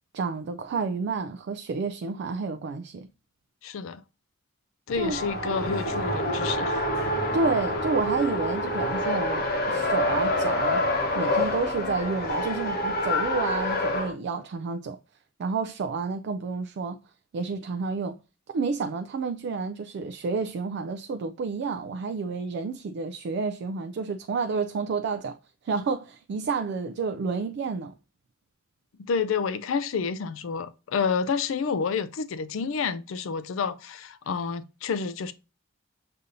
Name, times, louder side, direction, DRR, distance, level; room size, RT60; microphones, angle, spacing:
voice 1, 0.1-3.1 4.9-5.2 7.3-10.8 11.1-15.0 15.4-17.0 17.3-18.2 18.5-25.4 25.6-27.9, right 4 dB, 60° right, 0.3 m, -30 dB
voice 2, 3.6-4.0 4.9-6.9 29.0-35.3, left 5 dB, 75° left, 0.4 m, -29 dB
Race car auto racing, 4.9-14.1, left 1 dB, 50° left, 0.9 m, -27 dB
6.6 x 2.6 x 2.6 m
head